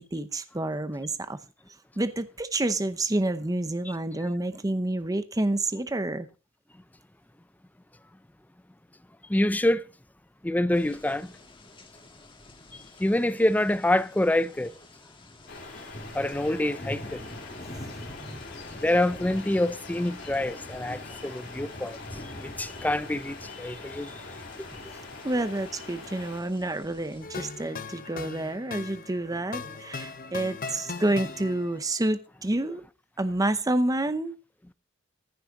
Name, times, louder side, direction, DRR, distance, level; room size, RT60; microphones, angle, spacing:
voice 1, 0.0-1.4 2.0-6.3 18.2-18.4 25.2-32.8 33.2-34.4, right 1 dB, 20° right, 0.7 m, -29 dB
voice 2, 9.3-9.8 10.4-11.3 13.0-14.7 16.1-17.2 18.8-22.0 22.4-24.1, left 1 dB, 10° left, 0.4 m, -26 dB
sound 1, 10.7-27.2, left 1 dB, 25° left, 1.6 m, -46 dB
sound 2, 15.5-26.4, left 3 dB, 60° left, 3.6 m, -43 dB
sound 3, 27.2-31.9, left 4 dB, 45° left, 0.8 m, -39 dB
15.0 x 6.3 x 4.7 m
head